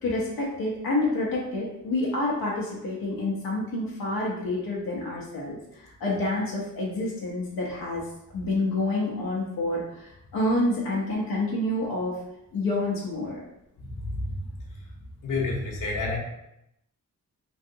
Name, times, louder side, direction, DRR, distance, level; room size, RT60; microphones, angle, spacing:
voice 1, 0.0-8.0 8.3-12.2 12.5-13.4, left 2 dB, 85° left, -4 dB, 0.8 m, -28 dB
voice 2, 13.8-14.4 15.2-16.2, left 3 dB, 60° left, -2 dB, 1.0 m, -29 dB
3.2 x 2.7 x 2.7 m, 0.83 s
cardioid pair, 90°, 35 cm